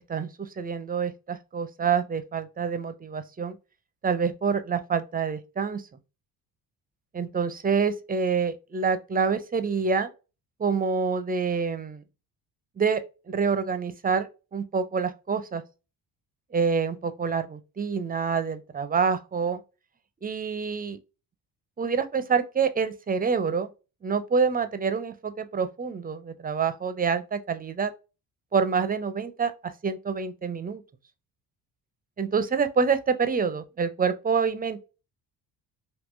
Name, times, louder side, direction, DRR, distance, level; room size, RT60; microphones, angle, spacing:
voice 1, 0.1-3.6 4.0-5.8 7.1-10.1 10.6-12.0 12.8-13.0 13.3-15.6 16.5-19.6 20.2-21.0 21.8-23.7 24.0-27.9 28.5-30.8 32.2-34.8, right 5 dB, 20° right, 0.4 m, -27 dB
3.6 x 2.7 x 2.5 m
supercardioid pair, 75°, 44 cm